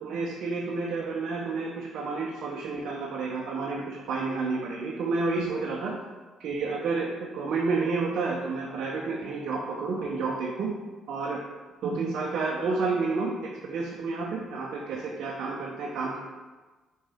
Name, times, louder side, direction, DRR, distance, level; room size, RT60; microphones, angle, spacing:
voice 1, 0.0-5.9 6.4-10.7 11.1-11.4 11.8-16.2, right 4 dB, 65° right, -2 dB, 0.8 m, -30 dB
5.3 x 5.2 x 3.6 m, 1.3 s
hypercardioid pair, 55°, 0 cm